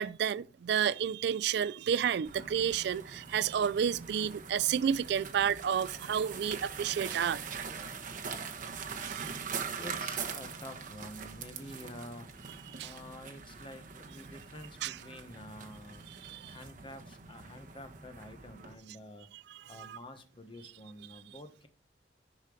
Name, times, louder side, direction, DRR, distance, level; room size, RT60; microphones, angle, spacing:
voice 1, 0.0-7.4 9.0-9.3 12.7-12.9 14.8-15.0 16.2-16.6 19.5-20.0, right 8 dB, 65° right, 0.3 m, -31 dB
sound 1, 2.2-18.7, right 6 dB, 50° right, 1.1 m, -43 dB
voice 2, 2.6-3.4 4.4-4.7 6.4-16.2 16.5-19.3 19.7-21.7, left 1 dB, 30° left, 1.2 m, -50 dB
10.5 x 4.4 x 4.9 m
head